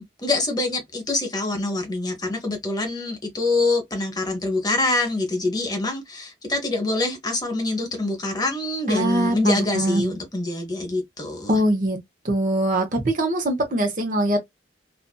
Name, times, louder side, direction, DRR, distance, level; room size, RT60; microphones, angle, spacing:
voice 1, 0.0-11.6, left 2 dB, 20° left, 0.8 m, -25 dB
voice 2, 8.9-10.2 11.5-12.0 12.2-14.4, right 1 dB, 45° right, 0.8 m, -22 dB
2.6 x 2.4 x 2.3 m
head